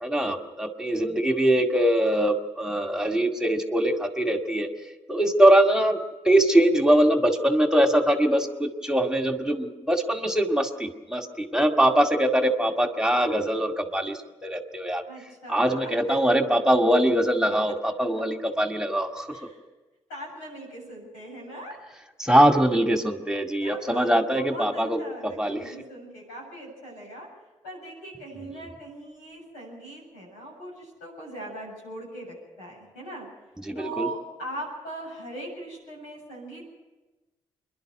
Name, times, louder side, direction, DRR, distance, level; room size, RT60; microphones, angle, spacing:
voice 1, 0.0-4.7 5.1-6.0 6.2-14.1 14.4-15.0 15.5-19.3 22.2-25.0 25.4-25.6 33.7-34.1, right 1 dB, 5° right, 5 dB, 2.1 m, -22 dB
voice 2, 15.1-16.4 19.3-19.6 20.1-21.8 23.6-27.3 27.6-33.3 33.7-36.8, right 1 dB, 90° left, -3 dB, 7.8 m, -40 dB
25.5 x 11.0 x 9.3 m, 1.2 s
hypercardioid pair, 45°, 13 cm